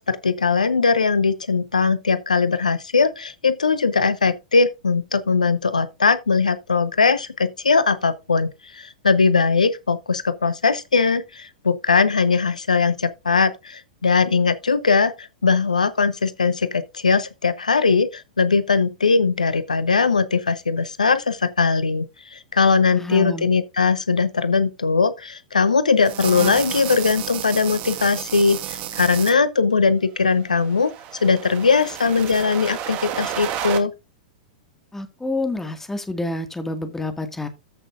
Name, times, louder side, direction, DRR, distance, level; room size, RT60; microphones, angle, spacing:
voice 1, 0.0-30.9 31.2-33.9, left 4 dB, 80° left, 0.9 m, -20 dB
voice 2, 22.9-23.5 34.9-37.5, left 2 dB, 10° left, 2.0 m, -28 dB
sound 1, 26.0-29.3 30.4-33.8, right 11 dB, 40° right, 1.7 m, -31 dB
14.0 x 6.4 x 2.5 m
figure-of-eight pair, 100°, 4 cm